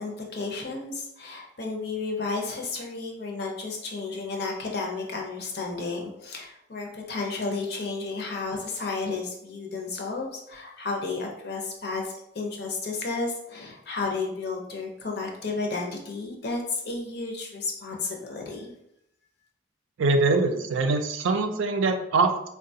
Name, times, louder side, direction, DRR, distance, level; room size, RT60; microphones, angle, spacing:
voice 1, 0.0-18.7, left 3 dB, 55° left, 1 dB, 0.6 m, -32 dB
voice 2, 20.0-22.5, right 3 dB, 75° right, 6 dB, 0.4 m, -23 dB
3.6 x 2.3 x 2.6 m, 0.78 s
head